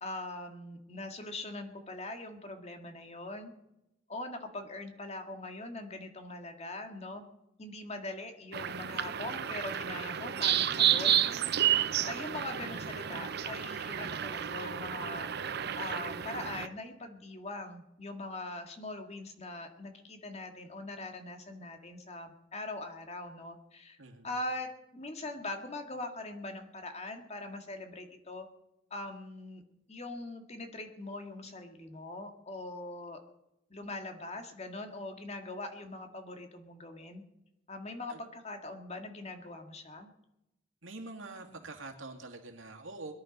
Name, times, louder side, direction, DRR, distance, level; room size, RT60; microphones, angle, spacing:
voice 1, 0.0-3.5 4.1-7.2 7.6-11.2 12.0-24.0 24.2-28.5 28.9-29.6 29.9-33.2 33.7-37.2 37.7-40.1, left 2 dB, 35° left, 5 dB, 2.0 m, -42 dB
sound 1, 8.5-16.7, right 10 dB, 55° right, 0.7 m, -31 dB
voice 2, 40.8-43.1, right 3 dB, 90° right, 3 dB, 2.5 m, -45 dB
22.0 x 11.0 x 5.3 m, 0.85 s
head